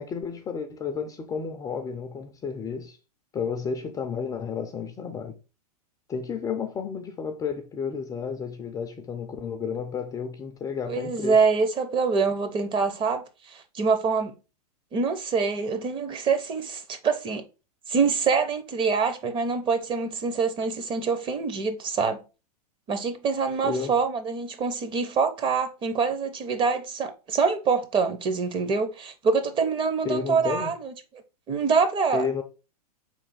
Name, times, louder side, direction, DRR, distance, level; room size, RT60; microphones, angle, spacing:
voice 1, 0.0-3.0 3.3-5.4 6.1-11.4 23.6-24.0 30.0-30.7 32.1-32.4, left 6 dB, 15° left, 0.4 m, -32 dB
voice 2, 10.9-14.4 14.9-17.4 17.9-22.2 22.9-30.9 31.5-32.3, right 5 dB, 25° right, 0.7 m, -25 dB
4.1 x 3.2 x 3.9 m
hypercardioid pair, 120°, 20 cm